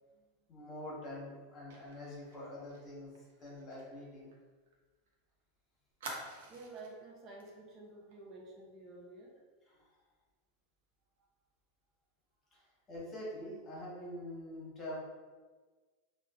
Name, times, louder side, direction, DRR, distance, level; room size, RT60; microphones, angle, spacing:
voice 1, 0.5-4.3 9.7-9.9 12.5-12.6 12.9-15.0, left 1 dB, 25° left, -6 dB, 1.1 m, -45 dB
Fire, 1.7-5.1 5.4-5.5 6.0-7.0 7.4-7.6 7.9-8.1, right 2 dB, 90° right, 0.6 m, -49 dB
voice 2, 6.5-9.4 11.2-11.3 12.5-12.7, right 2 dB, 35° right, -2 dB, 0.5 m, -51 dB
3.1 x 2.3 x 2.3 m, 1.4 s
supercardioid pair, 140°, 0 cm